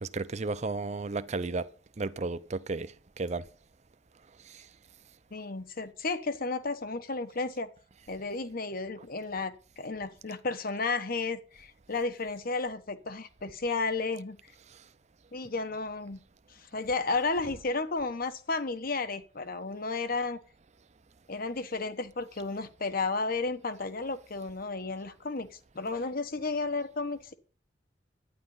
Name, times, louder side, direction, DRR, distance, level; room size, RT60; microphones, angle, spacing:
voice 1, 0.0-1.7 2.0-3.5 4.5-4.7, right 3 dB, 40° right, 0.6 m, -33 dB
voice 2, 5.3-7.7 8.1-14.4 15.3-16.2 16.6-20.4 21.3-27.3, left 3 dB, 50° left, 1.2 m, -33 dB
12.0 x 9.9 x 5.7 m
head